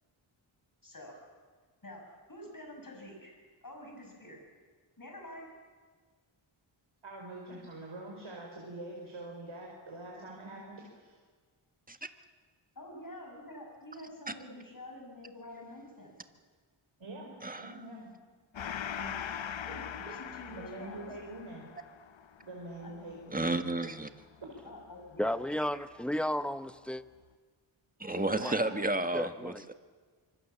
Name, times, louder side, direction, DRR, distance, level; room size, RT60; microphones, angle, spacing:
voice 1, 0.8-1.2 1.8-3.4 3.6-4.4 5.0-5.5 12.8-16.1 19.0-19.2 19.6-21.0 22.8-22.9 24.6-25.4, left 1 dB, 40° left, 7.5 m, -47 dB
voice 2, 7.0-11.2 17.0-18.1 20.5-21.7 22.4-23.5 24.4-24.6 28.1-28.9, right 2 dB, 70° right, 4.7 m, -45 dB
voice 3, 17.4-17.7 23.3-24.1 28.0-29.7, right 2 dB, 15° right, 1.6 m, -32 dB
Gong, 18.5-25.5, left 8 dB, 70° left, 0.8 m, -42 dB
voice 4, 25.2-27.0 28.1-28.6 29.1-29.6, left 1 dB, ahead, 0.9 m, -34 dB
25.5 x 25.0 x 7.3 m
wide cardioid pair, 65°, 49 cm